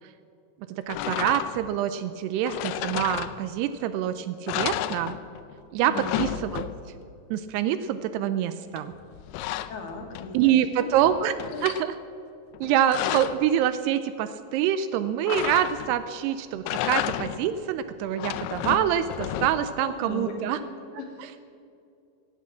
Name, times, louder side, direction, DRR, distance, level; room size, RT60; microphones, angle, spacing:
voice 1, 0.7-5.2 5.7-6.7 7.3-8.9 10.3-11.4 11.6-12.0 12.6-20.6 21.2-21.3, right 10 dB, 80° right, 12 dB, 2.5 m, -26 dB
sound 1, 0.9-1.8 2.5-3.7 4.1-4.2 4.5-5.5 5.8-7.1 8.8-10.5 10.9-11.9 12.5-13.5 15.3-16.1 16.5-17.6 18.0-19.8, left 13 dB, 85° left, 2.4 m, -32 dB
voice 2, 5.8-6.2 9.7-10.9 11.5-11.7 19.8-20.7 21.0-21.1, left 4 dB, 65° left, 2 dB, 3.5 m, -37 dB
16.5 x 10.0 x 7.3 m, 2.6 s
omnidirectional pair, 5.0 m